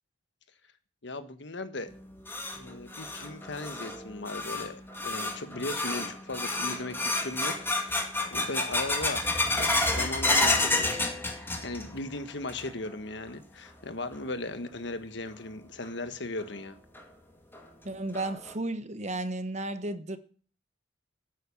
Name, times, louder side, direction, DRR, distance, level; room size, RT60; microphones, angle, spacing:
voice 1, 1.0-1.9 2.5-11.0 11.4-16.8, left 2 dB, 70° left, 1.5 m, -38 dB
sound 1, 1.9-12.0 12.3-12.9 13.3-13.4 14.1-14.2 15.8-15.9 16.4-16.5 17.0-17.1 17.5-17.6 18.1-18.5, left 2 dB, 10° left, 2.2 m, -30 dB
voice 2, 17.8-20.2, right 2 dB, 40° right, 1.1 m, -33 dB
12.5 x 9.6 x 7.2 m
head